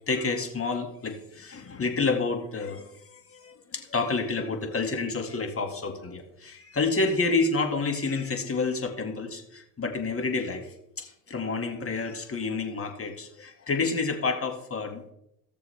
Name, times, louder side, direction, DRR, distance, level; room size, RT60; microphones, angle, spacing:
voice 1, 0.1-15.1, left 4 dB, 35° left, 4 dB, 2.2 m, -29 dB
16.5 x 6.8 x 3.5 m, 0.78 s
supercardioid pair, 90°, 42 cm